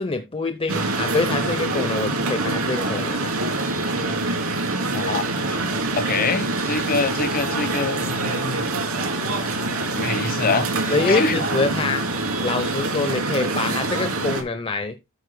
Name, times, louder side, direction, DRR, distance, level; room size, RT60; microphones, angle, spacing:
voice 1, 0.0-3.3 10.9-12.1 12.4-15.0, left 3 dB, 25° left, 0.7 m, -25 dB
sound 1, 0.7-14.4, right 2 dB, 80° right, 3.2 m, -25 dB
voice 2, 4.9-5.6 6.0-8.6 9.9-11.4, left 4 dB, 45° left, 1.1 m, -25 dB
13.0 x 9.2 x 2.2 m
head